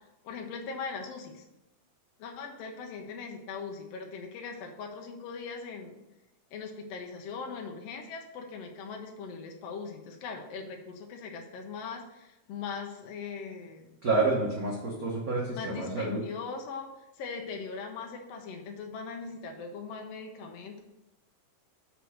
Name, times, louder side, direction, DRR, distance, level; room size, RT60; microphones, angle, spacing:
voice 1, 0.2-1.4 2.2-6.0 6.5-13.9 15.5-16.9 17.2-20.8, left 5 dB, 70° left, 2 dB, 1.6 m, -40 dB
voice 2, 14.0-16.2, right 3 dB, 80° right, -3 dB, 0.8 m, -29 dB
6.7 x 4.5 x 6.4 m, 0.96 s
omnidirectional pair, 3.6 m